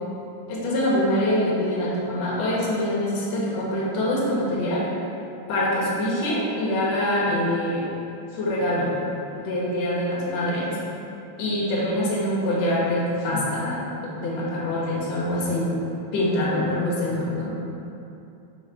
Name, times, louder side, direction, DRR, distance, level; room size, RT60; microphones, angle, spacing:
voice 1, 0.5-4.9 5.5-7.9 8.3-8.9 9.3-10.8 11.4-15.8 16.1-17.6, left 1 dB, 70° left, -6 dB, 1.6 m, -24 dB
5.1 x 4.0 x 4.7 m, 2.7 s
omnidirectional pair, 4.4 m